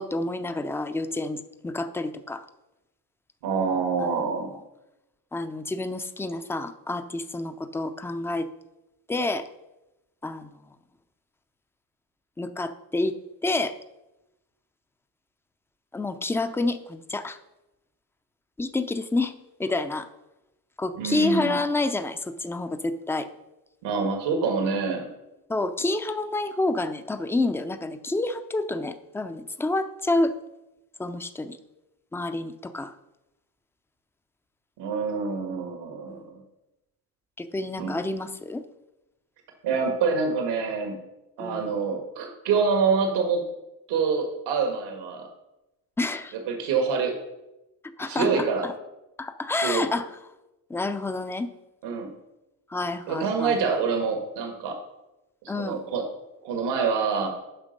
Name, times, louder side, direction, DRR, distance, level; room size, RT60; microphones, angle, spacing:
voice 1, 0.0-2.4 4.0-4.2 5.3-8.5 9.1-9.5 10.2-10.5 12.4-13.2 13.4-13.7 15.9-17.4 18.6-19.3 19.6-20.1 20.8-23.3 25.5-30.3 31.0-31.6 32.1-32.9 36.1-36.2 37.4-38.6 41.4-41.7 46.0-46.3 48.0-48.7 49.2-50.1 50.7-51.5 52.7-53.6 55.5-55.8, left 2 dB, 5° left, 10 dB, 0.5 m, -28 dB
voice 2, 3.4-4.5 20.9-21.6 23.8-25.0 34.8-36.4 37.8-37.9 39.6-41.0 41.4-43.4 43.9-45.3 46.5-47.1 48.1-48.6 49.5-49.8 51.8-52.1 53.1-54.8 55.6-56.0 56.4-57.3, right 5 dB, 80° right, 3 dB, 1.7 m, -26 dB
8.9 x 5.6 x 5.3 m, 0.95 s
cardioid pair, 105°, 40 cm